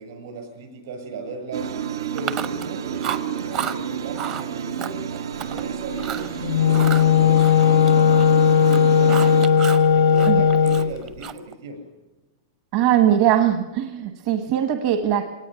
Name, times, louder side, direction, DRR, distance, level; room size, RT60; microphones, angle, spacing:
voice 1, 0.0-1.7 2.1-5.0 5.4-11.8, right 2 dB, 65° right, 6 dB, 7.7 m, -37 dB
sound 1, 1.5-9.5, right 8 dB, 85° right, 1.3 m, -30 dB
Chewing mastication, 2.2-2.7 3.0-3.8 4.1-4.4 4.8-5.6 6.0-6.3 6.7-8.3 8.6-9.9 10.1-11.5, right 9 dB, 25° right, 0.7 m, -31 dB
Wind instrument woodwind instrument, 6.4-10.9, left 8 dB, 75° left, 0.7 m, -16 dB
voice 2, 12.7-15.3, right 10 dB, 40° right, 7 dB, 1.1 m, -20 dB
22.5 x 18.5 x 9.4 m, 1.1 s
supercardioid pair, 180°, 2 cm